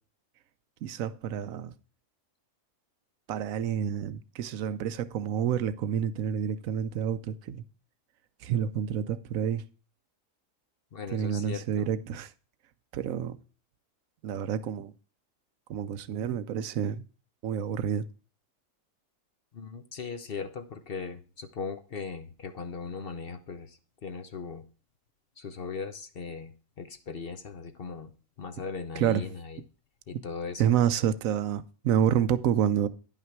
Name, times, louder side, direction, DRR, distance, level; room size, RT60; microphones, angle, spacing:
voice 1, 0.8-1.7 3.3-7.6 8.4-9.6 11.1-12.3 12.9-13.4 14.2-14.9 15.7-17.0 17.4-18.0 29.0-29.2 30.6-32.9, right 9 dB, 90° right, 1.1 m, -28 dB
voice 2, 10.9-11.9 19.5-24.6 25.4-28.1 28.4-29.6 30.1-30.6, left 5 dB, 50° left, 1.0 m, -38 dB
10.5 x 5.8 x 4.6 m
omnidirectional pair, 1.4 m